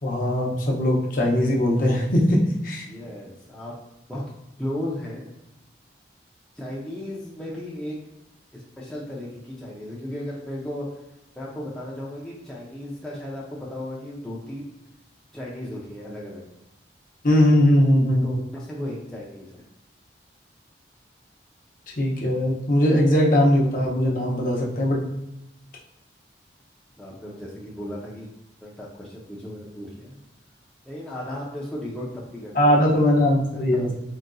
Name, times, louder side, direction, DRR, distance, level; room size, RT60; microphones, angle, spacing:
voice 1, 0.0-2.4 2.6-2.8 17.2-18.3 22.0-25.0 32.5-33.9, left 1 dB, 45° left, -3 dB, 0.6 m, -20 dB
voice 2, 2.9-3.7 4.1-4.2 4.6-5.4 6.6-8.0 8.5-11.0 11.3-14.7 15.3-16.4 18.2-19.6 27.0-28.3 28.6-30.2 30.9-32.8 33.5-33.9, left 1 dB, 5° left, -6 dB, 0.5 m, -35 dB
3.9 x 2.5 x 2.3 m, 0.92 s
head